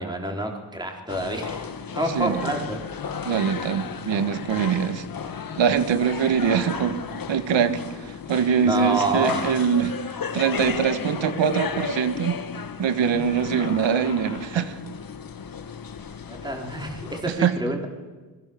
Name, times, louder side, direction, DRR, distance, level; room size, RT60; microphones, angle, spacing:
voice 1, 0.0-2.8 8.6-9.5 16.3-17.9, right 1 dB, 10° right, 1 dB, 4.2 m, -28 dB
sound 1, 1.1-17.2, left 6 dB, 50° left, 1.9 m, -34 dB
voice 2, 2.2-2.5 3.3-5.0 5.6-7.0 7.3-9.9 10.3-12.4 12.8-14.8 17.4-17.6, right 7 dB, 80° right, 11 dB, 1.8 m, -23 dB
29.0 x 21.5 x 7.1 m, 1.3 s
cardioid pair, 105°, 44 cm